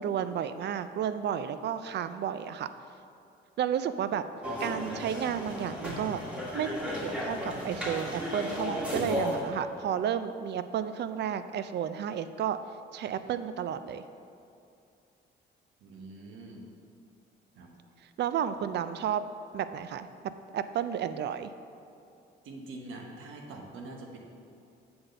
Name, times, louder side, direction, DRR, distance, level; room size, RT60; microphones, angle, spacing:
voice 1, 0.0-2.7 3.6-4.2 4.6-6.2 6.5-12.6 12.9-14.0 18.2-19.2 19.5-20.1 20.5-21.5, right 9 dB, 60° right, 12 dB, 0.4 m, -32 dB
sound 1, 4.4-9.4, equal, 5° right, 1.8 m, -34 dB
voice 2, 15.8-16.6 17.6-17.7 22.4-24.2, right 2 dB, 85° right, 1 dB, 1.1 m, -44 dB
7.7 x 4.0 x 6.5 m, 2.6 s
cardioid pair, 90°, 20 cm